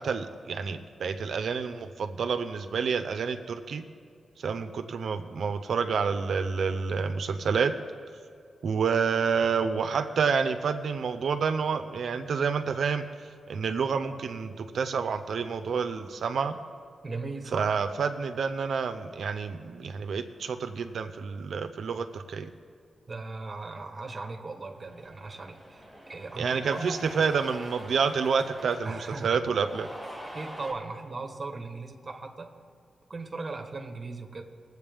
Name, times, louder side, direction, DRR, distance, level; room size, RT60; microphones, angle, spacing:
voice 1, 0.0-3.8 4.4-7.7 8.6-13.1 13.5-16.5 17.5-22.5 26.4-29.9, right 5 dB, 65° right, 8 dB, 0.6 m, -28 dB
voice 2, 17.0-17.7 23.1-27.0 28.8-29.4 30.3-32.5 33.1-34.4, right 3 dB, 25° right, 4 dB, 1.1 m, -38 dB
Cheering, 24.7-30.7, equal, ahead, 2.5 m, -45 dB
21.5 x 8.0 x 3.5 m, 2.4 s
wide cardioid pair, 170°, 0 cm